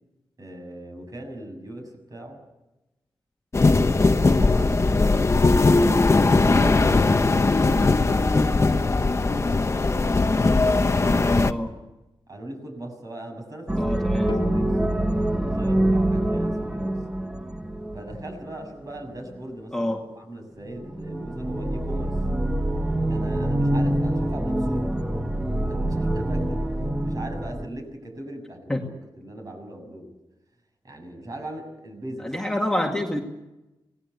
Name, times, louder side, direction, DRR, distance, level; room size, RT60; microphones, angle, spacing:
voice 1, 0.4-2.4 3.9-11.3 12.3-17.0 17.9-22.2 23.1-24.9 25.7-28.9 29.2-30.1 30.8-32.3, right 1 dB, 45° right, 4 dB, 7.0 m, -39 dB
sound 1, 3.5-11.5, left 3 dB, 30° left, 1.0 m, -19 dB
voice 2, 11.3-11.8 13.8-14.3 19.7-20.0 28.7-28.8 32.2-33.2, left 1 dB, 5° left, 0 dB, 2.2 m, -27 dB
sound 2, 13.7-18.5 20.6-27.7, right 1 dB, 10° right, 1.3 m, -25 dB
sound 3, 14.3-18.0, left 4 dB, 65° left, 1.7 m, -40 dB
27.0 x 19.0 x 8.3 m, 1.0 s
wide cardioid pair, 120°, 9 cm